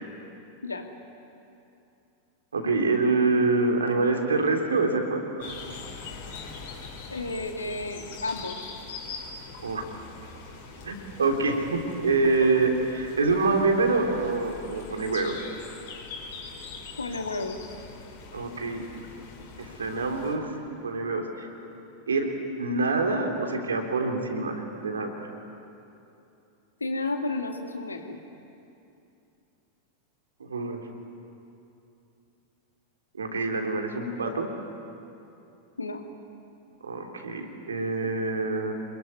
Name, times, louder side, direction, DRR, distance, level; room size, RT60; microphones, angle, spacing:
voice 1, 2.5-5.5 9.6-9.8 10.8-15.3 18.3-18.8 19.6-21.5 22.1-22.3 22.6-25.1 30.4-30.8 33.1-34.5 36.8-38.7, right 3 dB, 70° right, 3 dB, 3.6 m, -26 dB
sound 1, 5.4-20.3, left 4 dB, 55° left, 5.4 m, -43 dB
voice 2, 7.1-8.7 12.1-12.2 17.0-17.6 26.8-28.2 35.8-36.0, left 2 dB, 80° left, 5 dB, 2.3 m, -32 dB
27.5 x 22.5 x 9.7 m, 2.7 s
figure-of-eight pair, 90°, 0 cm